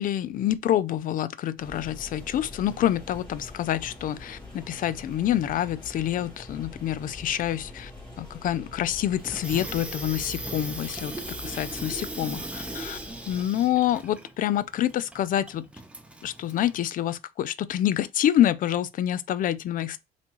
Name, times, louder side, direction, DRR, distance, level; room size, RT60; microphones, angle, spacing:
voice 1, 0.0-7.9 8.2-13.0 13.3-15.7 16.2-20.0, left 11 dB, 55° left, 0.5 m, -27 dB
sound 1, 1.6-13.5, left 2 dB, 25° left, 2.4 m, -44 dB
Water tap faucet / Sink (filling or washing), 9.2-16.8, right 2 dB, 5° right, 0.7 m, -38 dB
4.2 x 3.5 x 3.0 m
cardioid pair, 110°, 17 cm